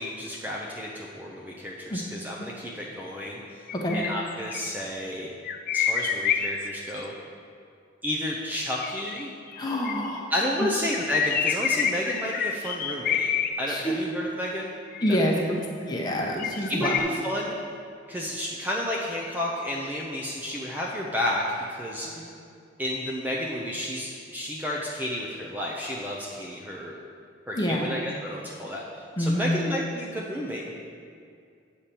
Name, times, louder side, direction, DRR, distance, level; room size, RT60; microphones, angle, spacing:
voice 1, 0.0-3.7 3.9-5.3 5.7-7.1 8.0-9.3 10.3-13.3 13.6-14.7 15.1-15.4 16.7-17.5 18.1-22.2 22.8-27.0 27.5-30.7, left 1 dB, 10° right, -3 dB, 0.5 m, -31 dB
sound 1, 3.7-4.7 5.4-6.9 8.8-10.2 10.9-13.5 14.9-15.5 16.4-17.0, left 8 dB, 45° left, 0.4 m, -28 dB
voice 2, 9.6-10.3 10.6-10.7 13.7-14.0 15.0-15.3 15.8-16.9 27.5-27.8 29.2-29.6, equal, 20° left, -1 dB, 1.0 m, -26 dB
9.1 x 4.3 x 6.8 m, 2.3 s
head